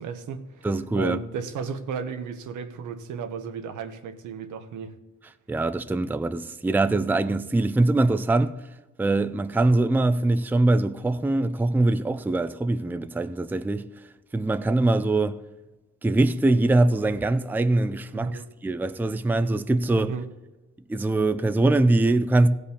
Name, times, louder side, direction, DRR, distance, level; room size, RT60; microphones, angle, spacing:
voice 1, 0.0-0.7 1.0-5.0 18.1-18.5 20.0-20.2, right 6 dB, 75° right, 1.2 m, -34 dB
voice 2, 0.6-1.2 5.5-8.7 9.0-13.9 14.3-15.4 16.0-20.1 20.9-22.5, right 2 dB, 5° right, 0.5 m, -23 dB
15.0 x 5.2 x 8.5 m
cardioid pair, 90°, 30 cm